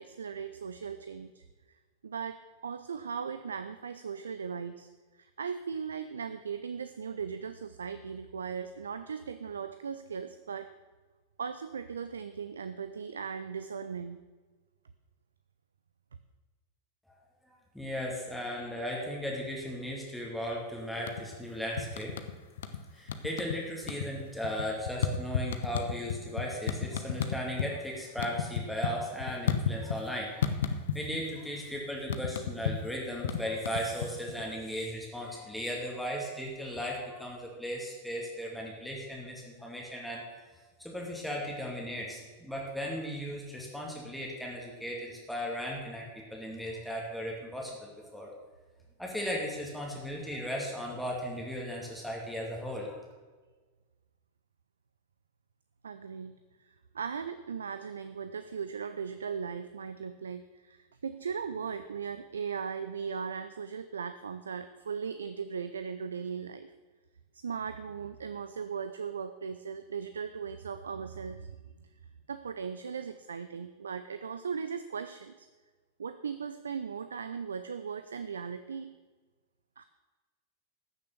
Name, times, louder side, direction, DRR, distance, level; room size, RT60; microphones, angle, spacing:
voice 1, 0.0-1.4 2.0-4.9 5.2-10.7 11.4-14.2 55.8-56.4 56.7-66.7 67.4-71.6 72.3-75.5 76.0-78.9 79.8-79.9, right 6 dB, 70° right, 11 dB, 0.5 m, -38 dB
voice 2, 17.7-22.1 22.9-40.2 40.8-48.3 49.0-53.0, equal, ahead, -3 dB, 2.3 m, -37 dB
sound 1, 20.9-21.4 21.8-22.8 23.1-23.6 23.8-27.7 28.0-30.1 30.4-31.3 31.5-34.4, left 7 dB, 60° left, 0.9 m, -32 dB
14.5 x 6.8 x 6.7 m, 1.3 s
figure-of-eight pair, 90°, 0 cm